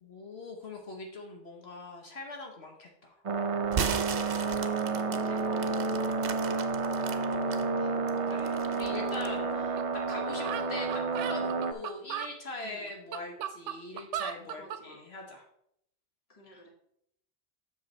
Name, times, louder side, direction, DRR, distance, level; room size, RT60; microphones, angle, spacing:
voice 1, 0.0-3.2 5.1-5.4 8.3-9.8 10.1-15.4 16.5-16.6, left 2 dB, 65° left, 2 dB, 1.2 m, -42 dB
sound 1, 3.3-11.7, right 4 dB, 40° right, 0.5 m, -30 dB
sound 2, 3.6-7.6 8.1-9.4, right 7 dB, 60° right, 0.9 m, -36 dB
voice 2, 5.1-5.9 12.6-12.9 14.6-15.1 16.3-16.7, right 1 dB, 35° left, 2 dB, 1.5 m, -52 dB
sound 3, 9.8-9.9 10.1-10.2 10.4-12.3 12.9-14.8, right 10 dB, 90° right, 0.9 m, -36 dB
7.8 x 6.3 x 4.1 m, 0.73 s
omnidirectional pair, 1.2 m